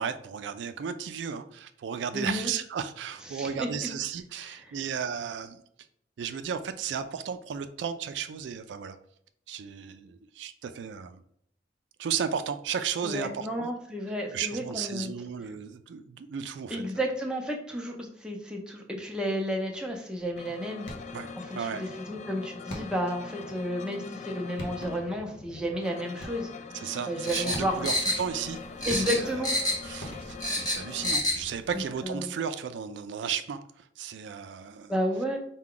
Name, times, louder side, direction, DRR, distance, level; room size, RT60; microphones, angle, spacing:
voice 1, 0.0-5.6 6.2-9.0 9.5-11.2 12.0-13.7 14.3-16.8 21.1-21.8 26.7-34.9, right 7 dB, 85° right, 10 dB, 0.3 m, -34 dB
voice 2, 2.1-2.5 3.3-3.9 4.6-4.8 13.0-15.1 16.7-20.9 21.5-26.5 27.1-27.9 28.9-29.5 32.0-32.3 34.9-35.4, equal, 5° right, 0 dB, 0.6 m, -32 dB
sound 1, 20.4-31.2, left 4 dB, 40° left, 0.3 m, -43 dB
sound 2, 20.8-21.3 22.7-23.2 24.2-24.3 24.6-25.2 26.2-26.7 27.5-28.1 28.9-29.6 30.0-30.7, equal, 80° left, 0.9 m, -42 dB
sound 3, 27.2-28.5 28.8-29.9 30.2-31.4 31.7-31.8, left 1 dB, 20° left, 1.0 m, -28 dB
4.6 x 2.2 x 3.7 m, 0.69 s
head